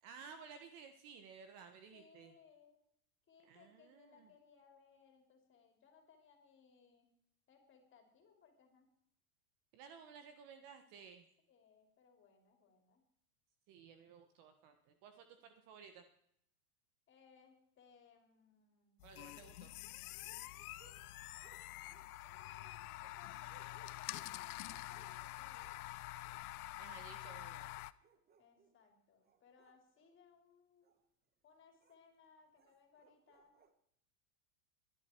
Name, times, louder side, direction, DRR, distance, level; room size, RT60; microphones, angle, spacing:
voice 1, 0.0-2.3 3.4-4.3 9.7-11.3 13.7-16.0 19.0-19.7 26.8-27.7, right 6 dB, 45° right, 8 dB, 1.5 m, -56 dB
voice 2, 1.9-2.8 3.3-7.1 7.5-8.9 11.5-13.0 17.1-19.4 22.2-26.0 28.4-31.0 31.4-33.6, left 6 dB, 25° left, 4 dB, 3.6 m, -66 dB
sound 1, 19.0-27.9, left 17 dB, 70° left, 0.8 m, -47 dB
sound 2, 19.1-25.9 26.2-26.6 27.2-28.8 29.2-30.2 30.8-31.0 31.8-32.0 32.6-33.7, right 5 dB, 20° right, 1.3 m, -70 dB
22.5 x 11.0 x 4.6 m, 0.71 s
supercardioid pair, 135°, 47 cm